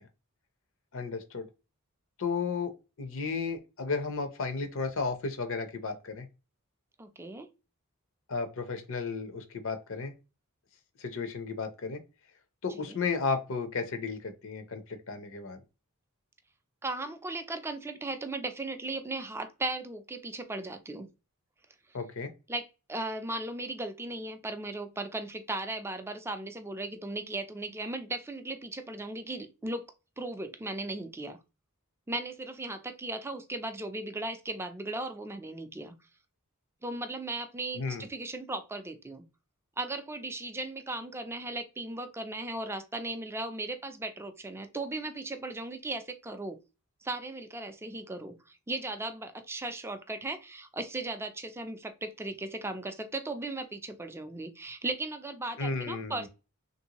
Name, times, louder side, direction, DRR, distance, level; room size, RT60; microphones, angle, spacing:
voice 1, 0.9-1.5 2.2-2.7 3.0-6.3 8.3-10.1 11.0-12.0 12.6-15.6 21.9-22.3 37.7-38.1 55.6-56.3, left 4 dB, 60° left, 0.7 m, -33 dB
voice 2, 7.0-7.5 12.7-13.0 16.8-21.1 22.5-29.9 30.2-31.4 32.1-35.9 36.8-39.2 39.8-46.6 47.0-56.3, right 2 dB, 10° right, 0.4 m, -37 dB
3.2 x 2.6 x 2.8 m
head